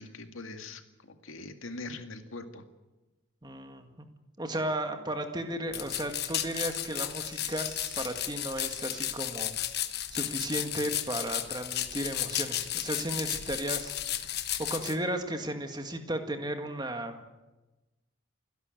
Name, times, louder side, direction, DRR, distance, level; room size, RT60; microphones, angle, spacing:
voice 1, 0.0-2.6, left 3 dB, 80° left, 7 dB, 2.1 m, -42 dB
voice 2, 3.4-4.1 4.4-7.7 8.0-9.5 10.1-13.9 14.7-17.2, right 1 dB, 20° right, 6 dB, 1.9 m, -34 dB
sound 1, 5.7-14.9, left 12 dB, 50° left, 1.2 m, -34 dB
Crying sobbing, 6.8-8.3 8.9-9.4 9.7-9.8 10.2-10.3 10.8-11.0 11.2-11.3, right 1 dB, 5° right, 2.4 m, -53 dB
29.5 x 11.0 x 9.1 m, 1.1 s
head